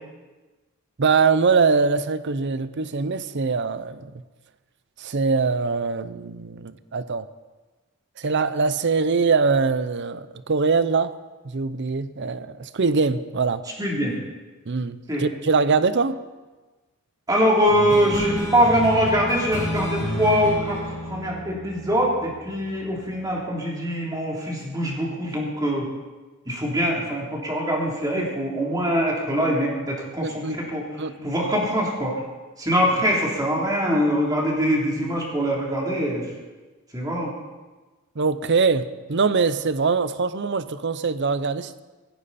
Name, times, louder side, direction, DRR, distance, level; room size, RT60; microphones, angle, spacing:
voice 1, 1.0-4.1 5.0-7.3 8.2-11.1 11.4-13.6 14.7-16.2 28.2-28.3 30.2-30.6 31.0-31.3 38.2-41.8, right 4 dB, 55° right, 14 dB, 0.6 m, -23 dB
voice 2, 13.8-14.2 15.1-15.2 17.3-25.9 26.4-30.8 31.2-32.1 32.6-36.2 36.9-37.3, equal, 15° right, -3 dB, 3.3 m, -23 dB
sound 1, 17.7-22.6, equal, 15° left, 5.2 m, -30 dB
17.0 x 15.0 x 4.2 m, 1.2 s
head